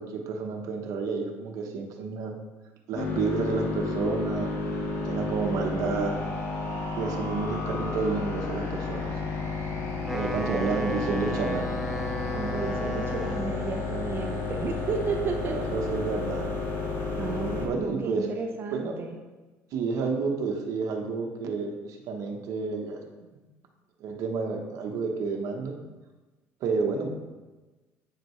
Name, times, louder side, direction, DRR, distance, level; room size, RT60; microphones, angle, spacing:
voice 1, 0.0-2.3 2.9-4.5 5.0-6.2 7.0-9.1 10.1-11.7 15.4-16.5 17.5-18.3 18.7-19.0 19.7-23.0 23.3-23.4 24.0-25.8 26.6-27.1, right 4 dB, 65° right, 3 dB, 1.0 m, -30 dB
sound 1, 2.9-17.7, left 4 dB, 40° left, 1.3 m, -31 dB
Wind instrument woodwind instrument, 9.9-13.8, equal, ahead, 0.5 m, -35 dB
voice 2, 12.3-15.6 17.2-19.2, right 5 dB, 40° right, 4 dB, 0.9 m, -33 dB
8.6 x 5.1 x 3.1 m, 1.2 s
cardioid pair, 120°, 6 cm